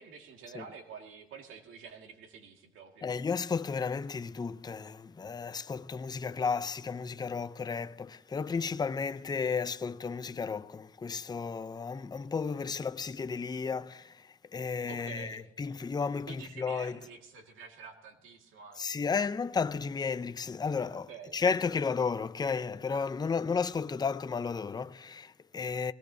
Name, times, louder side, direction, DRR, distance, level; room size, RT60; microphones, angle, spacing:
voice 1, 0.0-3.1 14.9-15.5 16.3-18.9 20.9-21.4, right 6 dB, 85° right, 1.9 m, -48 dB
voice 2, 3.0-17.0 18.8-25.9, left 5 dB, 20° left, 0.5 m, -33 dB
19.5 x 17.5 x 2.7 m
cardioid pair, 90°, 20 cm